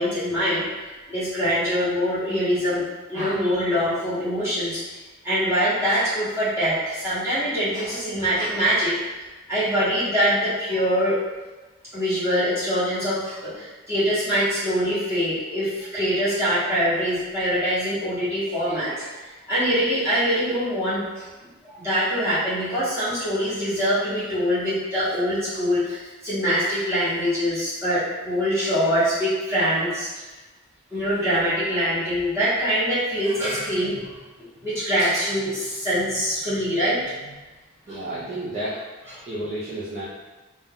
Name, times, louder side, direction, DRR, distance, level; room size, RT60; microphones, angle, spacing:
voice 1, 0.0-2.8 3.1-4.8 5.2-8.9 9.5-11.2 11.9-21.3 21.6-30.1 30.9-34.1 34.6-37.3 37.9-38.0, equal, 10° right, -13 dB, 1.2 m, -24 dB
voice 2, 37.9-38.8 39.3-40.0, right 1 dB, 30° right, -9 dB, 0.5 m, -31 dB
2.7 x 2.2 x 3.5 m, 1.2 s
head